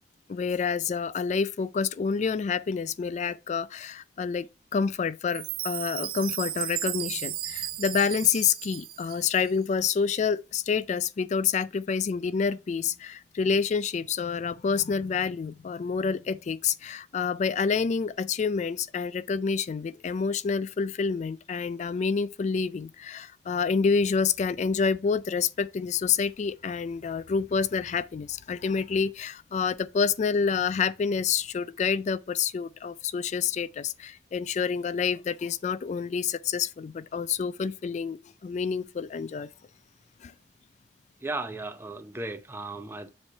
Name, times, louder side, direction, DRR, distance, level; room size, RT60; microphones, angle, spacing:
voice 1, 0.3-39.5 40.2-40.3, left 5 dB, 40° left, 0.3 m, -28 dB
Chime, 5.3-9.5, right 13 dB, 55° right, 0.5 m, -35 dB
voice 2, 41.2-43.1, right 2 dB, 15° right, 0.7 m, -35 dB
7.1 x 3.2 x 5.1 m
head